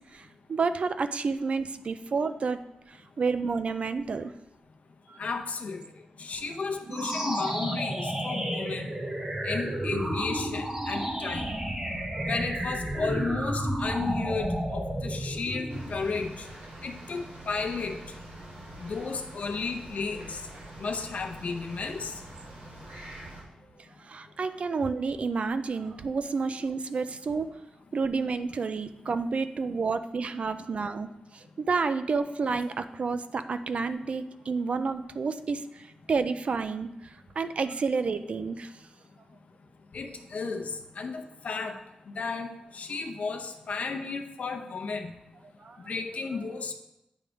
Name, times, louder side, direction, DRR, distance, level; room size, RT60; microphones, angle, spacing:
voice 1, 0.1-4.3 5.1-5.2 12.1-12.3 24.0-27.5 27.9-38.7 45.6-45.8, right 4 dB, 50° right, 10 dB, 0.4 m, -30 dB
voice 2, 5.2-5.8 6.2-8.9 9.4-11.5 12.2-16.5 16.8-18.0 18.8-20.4 20.8-22.1 39.9-41.8 42.1-42.5 42.7-45.1 45.9-46.7, left 4 dB, 60° left, 4 dB, 0.7 m, -33 dB
sound 1, 6.8-16.3, right 1 dB, 25° right, 0.9 m, -32 dB
sound 2, 15.7-23.4, right 1 dB, 90° right, 2.3 m, -45 dB
9.2 x 3.5 x 5.0 m, 0.88 s
wide cardioid pair, 140°, 3 cm